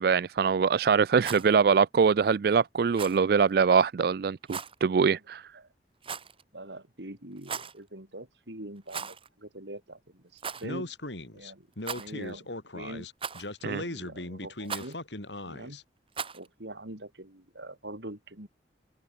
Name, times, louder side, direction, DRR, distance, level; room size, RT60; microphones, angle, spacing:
voice 1, 0.0-5.4 13.6-13.8, right 6 dB, 60° right, 0.4 m, -23 dB
Rattle, 1.1-1.5 2.9-3.2 4.5-4.7 6.0-6.4 7.4-7.8 8.9-9.3 9.6-9.7 10.4-10.7 11.8-12.3 13.2-13.6 14.6-14.9 16.1-16.5, right 6 dB, 30° right, 2.2 m, -37 dB
voice 2, 6.5-10.9 11.3-11.7 11.9-12.5 12.7-13.1 13.7-15.0 15.5-15.8 16.3-18.5, right 1 dB, 80° right, 4.8 m, -43 dB
Speech, 10.6-15.8, left 1 dB, 85° left, 6.1 m, -38 dB
head